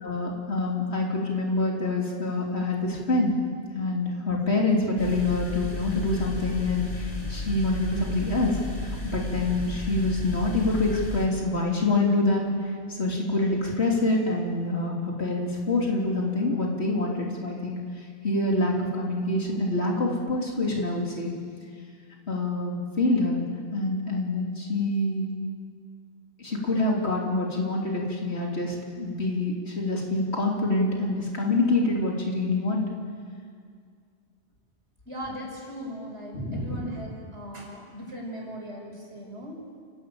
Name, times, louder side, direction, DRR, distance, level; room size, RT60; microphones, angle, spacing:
voice 1, 0.0-3.4 3.7-12.5 12.9-17.8 18.2-21.3 22.3-23.4 23.7-25.3 26.4-32.8 36.3-36.9, left 2 dB, 70° left, -2 dB, 3.5 m, -26 dB
sound 1, 5.0-11.3, left 2 dB, 45° left, 2.6 m, -33 dB
voice 2, 35.1-39.6, equal, 75° right, -2 dB, 5.7 m, -38 dB
29.5 x 12.0 x 8.8 m, 2.1 s
omnidirectional pair, 1.2 m